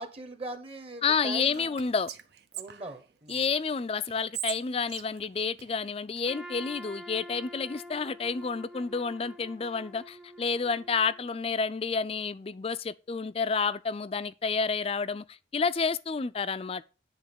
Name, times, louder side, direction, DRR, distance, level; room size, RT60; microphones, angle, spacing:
voice 1, 0.0-1.8 2.5-3.5, right 2 dB, 35° right, 1.0 m, -41 dB
voice 2, 1.0-2.1 3.3-16.9, left 5 dB, 35° left, 0.4 m, -30 dB
Whispering, 1.5-3.5 4.1-6.2, right 11 dB, 70° right, 0.8 m, -41 dB
Trumpet, 6.3-11.3, equal, 5° right, 0.7 m, -47 dB
9.9 x 3.9 x 6.8 m
head